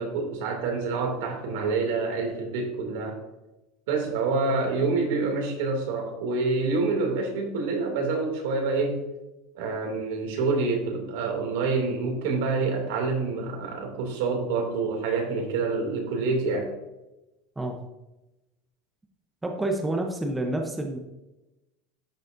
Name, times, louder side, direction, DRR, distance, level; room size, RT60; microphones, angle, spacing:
voice 1, 0.0-3.2 3.9-9.0 9.5-16.7, right 4 dB, 75° right, 3 dB, 2.5 m, -27 dB
voice 2, 19.4-21.0, right 2 dB, 10° right, 2 dB, 0.8 m, -28 dB
12.0 x 6.3 x 2.6 m, 0.99 s
supercardioid pair, 160°, 0 cm